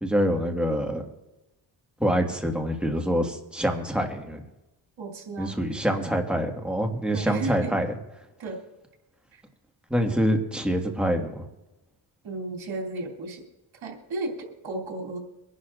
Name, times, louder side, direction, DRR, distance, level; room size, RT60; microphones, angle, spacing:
voice 1, 0.0-1.0 2.0-4.4 5.4-8.0 9.9-11.4, equal, ahead, 2 dB, 1.7 m, -25 dB
voice 2, 5.0-5.6 7.1-7.7 8.4-8.6 12.2-13.4 13.8-15.2, right 2 dB, 75° right, 1 dB, 3.0 m, -34 dB
24.5 x 11.5 x 2.5 m, 0.98 s
cardioid pair, 90°, 47 cm